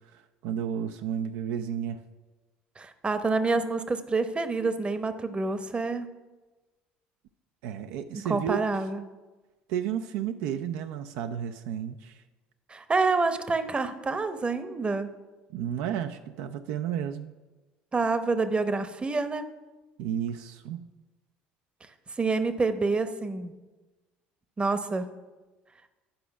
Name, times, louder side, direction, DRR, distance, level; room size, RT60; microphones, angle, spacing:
voice 1, 0.1-2.0 7.6-8.7 9.7-12.2 15.5-17.3 20.0-20.8, right 9 dB, 75° right, 7 dB, 0.4 m, -32 dB
voice 2, 2.8-6.1 8.3-9.0 12.7-15.1 17.9-19.4 22.2-23.5 24.6-25.1, right 3 dB, 25° right, 10 dB, 0.8 m, -27 dB
10.5 x 5.0 x 5.8 m, 1.2 s
hypercardioid pair, 70°, 4 cm